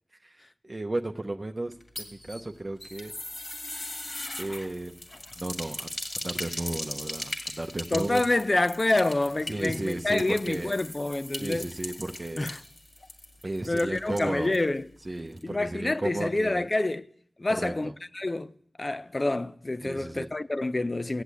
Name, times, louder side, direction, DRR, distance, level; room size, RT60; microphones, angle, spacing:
voice 1, 0.2-3.1 4.4-5.0 5.4-8.2 9.5-10.8 11.4-12.5 13.4-14.5 15.0-16.7 17.5-17.9 19.8-20.3, right 2 dB, 40° right, 0.8 m, -34 dB
sound 1, 1.7-14.7 15.0-15.1 15.4-15.5, left 1 dB, 55° left, 2.5 m, -39 dB
voice 2, 7.9-11.7 12.4-12.6 13.7-14.9 15.4-17.1 17.4-18.5 18.8-21.2, left 2 dB, 40° left, 0.5 m, -27 dB
15.5 x 8.1 x 8.3 m
cardioid pair, 45°, 0 cm